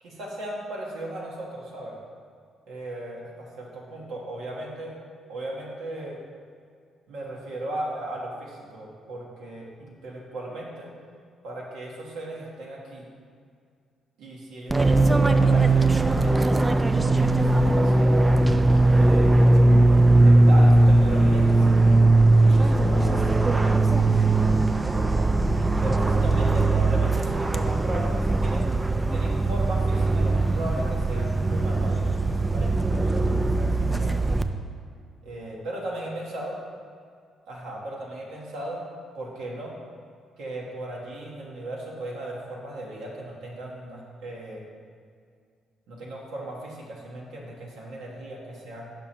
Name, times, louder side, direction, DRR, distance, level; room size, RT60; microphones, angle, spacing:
voice 1, 0.0-2.0 2.7-4.9 5.3-6.2 7.1-10.9 11.4-13.1 14.2-16.5 16.9-19.7 20.2-21.7 22.1-24.0 24.7-25.1 25.8-28.7 29.1-34.3 35.2-36.6 37.5-38.8 39.1-39.7 40.4-44.6 45.9-48.9, right 1 dB, 85° right, -3 dB, 1.2 m, -37 dB
Fixed-wing aircraft airplane, 14.7-34.4, right 2 dB, 15° right, 0.3 m, -19 dB
5.8 x 5.0 x 4.3 m, 2.2 s
cardioid pair, 90°, 0 cm